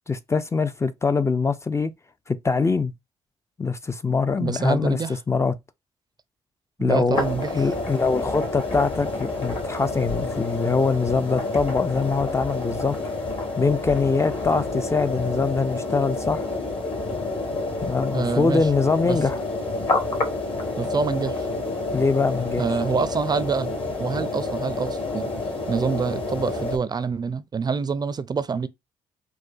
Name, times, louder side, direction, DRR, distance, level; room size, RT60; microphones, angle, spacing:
voice 1, 0.1-1.9 2.3-2.9 3.6-5.0 5.3-5.5 6.8-7.2 7.5-13.0 13.6-16.5 17.8-19.4 21.9-22.6, left 4 dB, 25° left, 0.4 m, -23 dB
voice 2, 4.4-5.1 6.8-7.7 18.1-18.7 19.0-19.2 20.8-21.5 22.6-25.3 25.7-28.7, right 5 dB, 35° right, 0.4 m, -26 dB
sound 1, 7.1-26.8, left 2 dB, 50° left, 1.6 m, -28 dB
4.6 x 2.2 x 2.5 m
supercardioid pair, 60°, 12 cm